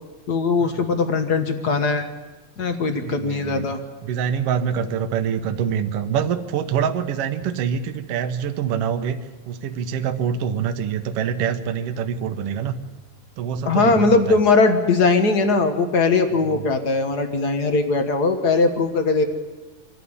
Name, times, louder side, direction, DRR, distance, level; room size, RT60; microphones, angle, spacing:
voice 1, 0.3-2.1 2.6-3.8 13.6-19.2, left 3 dB, 45° left, 8 dB, 1.3 m, -20 dB
voice 2, 3.0-3.7 4.0-9.2 9.5-12.8 13.4-14.4 16.4-16.7, right 8 dB, 65° right, 9 dB, 1.8 m, -25 dB
24.5 x 12.5 x 9.7 m, 1.2 s
omnidirectional pair, 3.3 m